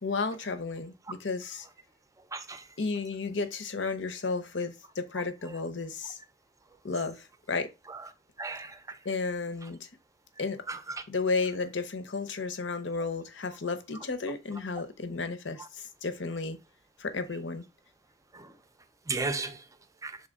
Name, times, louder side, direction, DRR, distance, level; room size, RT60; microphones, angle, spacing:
voice 1, 0.0-1.7 2.8-6.2 6.8-7.7 9.0-9.9 10.4-10.6 11.1-16.6 17.0-17.7, left 4 dB, 70° left, 0.9 m, -33 dB
voice 2, 2.3-2.6 7.9-8.0 8.4-9.0 10.7-10.8 18.3-18.5 19.1-19.6 20.0-20.2, right 3 dB, 15° right, 0.6 m, -34 dB
6.4 x 4.1 x 3.6 m
head